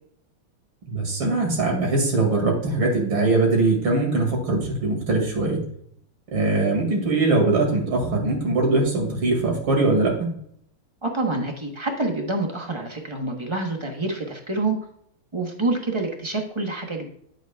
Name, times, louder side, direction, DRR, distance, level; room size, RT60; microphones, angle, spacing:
voice 1, 0.9-5.6 6.3-10.1, right 2 dB, 75° right, 0 dB, 3.1 m, -21 dB
voice 2, 11.0-14.8 15.3-17.1, right 2 dB, 25° right, 2 dB, 0.7 m, -27 dB
9.3 x 7.7 x 2.3 m, 0.68 s
omnidirectional pair, 2.3 m